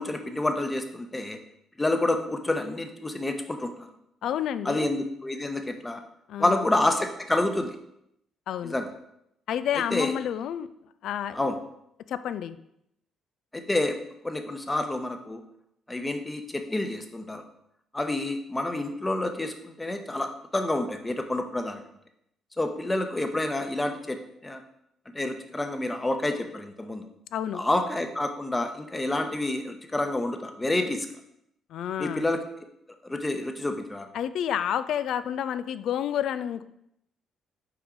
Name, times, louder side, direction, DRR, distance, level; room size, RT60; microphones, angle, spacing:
voice 1, 0.0-1.4 1.8-3.9 4.6-6.0 6.4-7.8 8.6-8.9 9.9-10.1 11.3-11.6 13.5-14.0 14.2-15.4 15.9-17.4 17.9-21.8 22.6-24.6 25.1-27.1 27.5-31.1 32.0-32.4 33.0-34.1, left 2 dB, 20° left, 6 dB, 0.9 m, -28 dB
voice 2, 4.2-4.8 6.3-6.7 8.5-8.8 9.5-10.7 11.0-11.5 12.1-12.6 27.3-27.6 31.7-32.3 34.1-36.6, left 9 dB, 65° left, 13 dB, 0.3 m, -29 dB
5.9 x 4.6 x 3.9 m, 0.78 s
hypercardioid pair, 50°, 0 cm